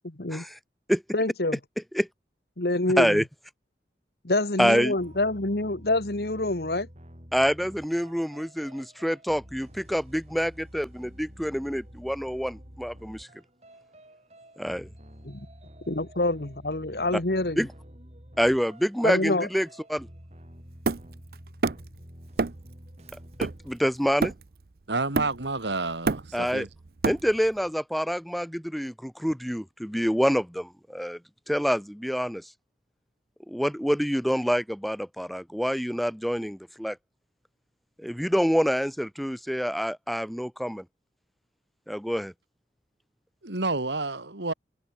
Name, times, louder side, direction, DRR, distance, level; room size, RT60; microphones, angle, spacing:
voice 1, 0.0-0.4 1.1-1.6 2.6-3.2 4.2-6.9 15.9-17.6 19.0-19.5, left 2 dB, 60° left, 1.7 m, -26 dB
voice 2, 4.6-4.9 7.3-13.3 14.6-14.8 17.6-17.7 18.4-20.1 23.4-24.3 26.3-26.6 27.0-31.2 31.5-32.5 33.5-37.0 38.0-40.8 41.9-42.3, equal, ahead, 2.9 m, -27 dB
sound 1, 5.0-23.8, equal, 35° right, 7.6 m, -49 dB
Hammer, 20.9-22.0 22.4-22.7 23.1-24.7 25.2-25.6 25.9-27.6, right 3 dB, 55° right, 0.6 m, -29 dB
voice 3, 24.9-26.7 43.4-44.5, right 3 dB, 85° right, 2.6 m, -29 dB
head